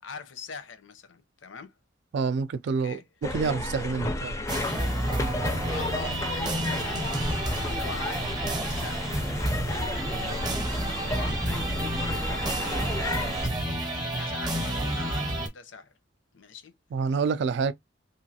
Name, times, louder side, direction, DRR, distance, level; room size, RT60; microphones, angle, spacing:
voice 1, 0.0-1.7 2.8-3.0 3.7-4.2 5.4-9.1 9.6-15.9 16.3-16.7, left 5 dB, 85° left, 0.6 m, -44 dB
voice 2, 2.1-3.0 3.3-4.3 16.9-17.7, right 5 dB, 65° right, 0.3 m, -27 dB
sound 1, 3.2-13.5, left 2 dB, 15° left, 0.4 m, -33 dB
sound 2, 4.5-15.5, right 1 dB, 25° right, 0.7 m, -30 dB
3.1 x 2.3 x 2.7 m
head